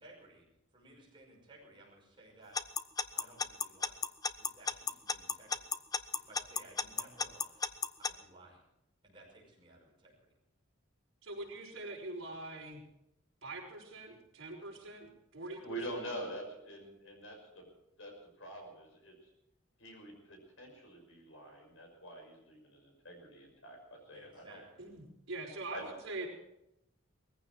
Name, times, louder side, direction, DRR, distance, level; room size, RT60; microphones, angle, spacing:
voice 1, 0.0-0.4 0.7-2.6 3.1-4.0 4.4-7.7 8.0-8.7 9.0-10.3 24.1-24.9, right 2 dB, 25° right, -2 dB, 5.8 m, -58 dB
Alarm / Clock, 2.6-8.1, left 5 dB, 20° left, 0.5 m, -33 dB
voice 2, 11.2-12.8 13.4-15.6 15.9-16.0 24.8-26.3, right 2 dB, 70° right, -2 dB, 5.3 m, -43 dB
voice 3, 15.5-17.7 18.0-19.2 19.8-24.6 25.7-25.8, right 1 dB, 70° left, 2 dB, 6.0 m, -46 dB
20.0 x 15.0 x 4.7 m, 0.84 s
head